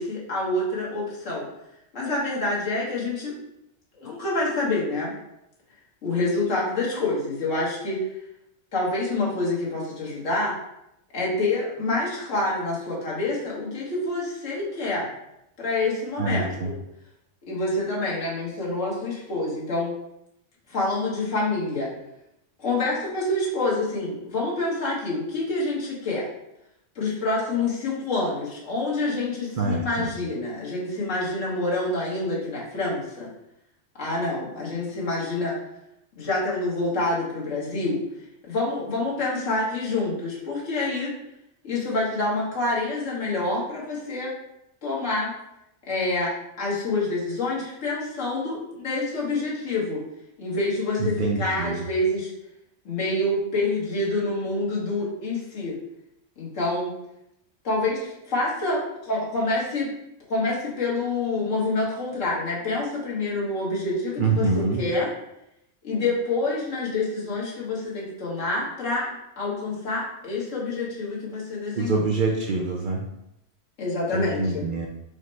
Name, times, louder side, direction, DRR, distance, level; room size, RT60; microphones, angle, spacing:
voice 1, 0.0-1.5 1.9-3.4 3.9-5.1 6.0-8.1 8.7-10.6 11.1-15.1 15.6-16.8 17.5-19.9 20.7-21.9 22.6-26.3 26.9-33.3 34.0-35.6 36.2-38.0 38.4-41.1 41.6-44.3 44.8-45.3 45.9-50.0 50.4-52.3 52.8-55.8 56.4-56.9 57.6-59.9 60.3-65.1 65.8-69.1 69.4-72.0 73.8-74.7, left 2 dB, 85° left, -5 dB, 1.6 m, -27 dB
voice 2, 16.2-16.7 29.6-30.1 51.0-51.8 64.2-64.8 71.7-73.0 74.1-74.9, right 3 dB, 60° right, 0 dB, 0.5 m, -25 dB
5.0 x 2.1 x 4.2 m, 0.85 s
omnidirectional pair, 1.3 m